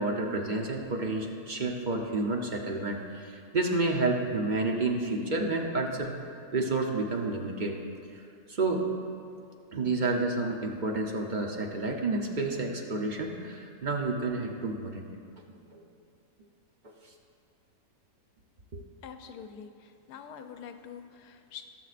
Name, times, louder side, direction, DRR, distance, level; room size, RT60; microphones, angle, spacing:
voice 1, 0.0-6.1 6.5-7.8 8.5-8.9 9.7-15.0 15.7-15.8 18.7-18.8, right 3 dB, 40° right, 1 dB, 0.7 m, -30 dB
voice 2, 19.0-21.6, left 7 dB, 80° left, 7 dB, 1.2 m, -45 dB
19.5 x 7.5 x 2.5 m, 2.4 s
omnidirectional pair, 1.7 m